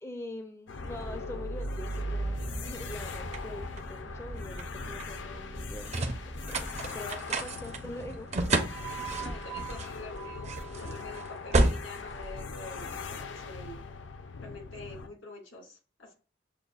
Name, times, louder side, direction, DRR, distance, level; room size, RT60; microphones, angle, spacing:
voice 1, 0.0-2.4 2.6-8.3, left 1 dB, 15° left, 6 dB, 0.4 m, -44 dB
sound 1, 0.7-15.1, left 5 dB, 70° left, 0.5 m, -41 dB
sound 2, 0.8-13.2, right 2 dB, 35° right, 0.5 m, -33 dB
voice 2, 9.2-13.9 14.4-16.1, left 2 dB, 85° left, -1 dB, 2.0 m, -46 dB
6.7 x 2.3 x 2.3 m, 0.34 s
head